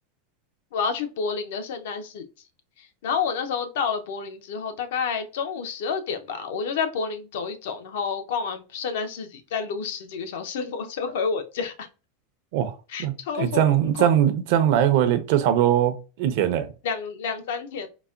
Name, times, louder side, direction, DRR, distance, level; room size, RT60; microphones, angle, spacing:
voice 1, 0.7-2.2 3.0-11.9 12.9-13.6 14.0-14.1 16.8-17.9, left 6 dB, 80° left, 0.7 m, -29 dB
voice 2, 13.0-16.7, right 10 dB, 60° right, 0.6 m, -21 dB
4.0 x 2.1 x 2.4 m
supercardioid pair, 140°, 0 cm